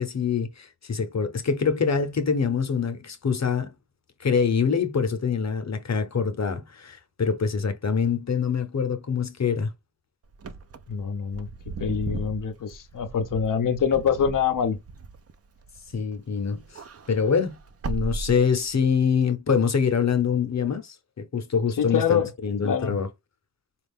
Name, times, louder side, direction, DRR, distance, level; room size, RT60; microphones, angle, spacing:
voice 1, 0.0-3.7 4.2-9.7 15.9-17.6 17.8-23.1, left 6 dB, 60° left, 0.8 m, -25 dB
Wind / Car, 10.3-16.2 16.5-18.9, right 3 dB, 50° right, 0.5 m, -37 dB
voice 2, 10.9-11.5 11.8-14.8 21.8-22.3 22.6-23.0, left 7 dB, 90° left, 0.6 m, -25 dB
3.9 x 2.4 x 3.5 m
cardioid pair, 55°, 31 cm